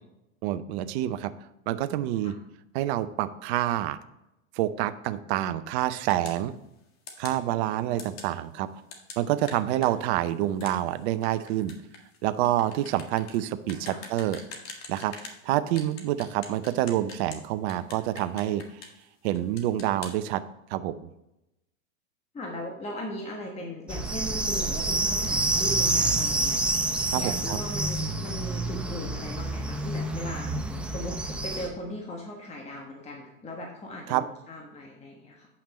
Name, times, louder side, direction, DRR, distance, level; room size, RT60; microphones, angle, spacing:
voice 1, 0.4-1.3 1.7-2.3 2.7-4.0 4.6-6.5 7.2-8.7 9.2-11.7 12.2-14.4 14.9-18.6 19.2-20.4 20.7-20.9 27.1-27.6 34.1-34.2, right 13 dB, 50° right, 12 dB, 0.7 m, -27 dB
sound 1, 6.1-6.4 7.1-7.4 8.0-8.3 8.9-15.4 15.8-17.4 17.7-19.1 19.3-20.1, left 4 dB, 40° left, 1.8 m, -44 dB
voice 2, 22.3-26.6 27.1-30.5 30.9-35.5, left 1 dB, 15° left, 0 dB, 1.2 m, -38 dB
sound 2, 23.9-31.7, right 2 dB, 5° right, 0.5 m, -28 dB
8.8 x 5.9 x 4.2 m, 0.88 s
hypercardioid pair, 115°, 42 cm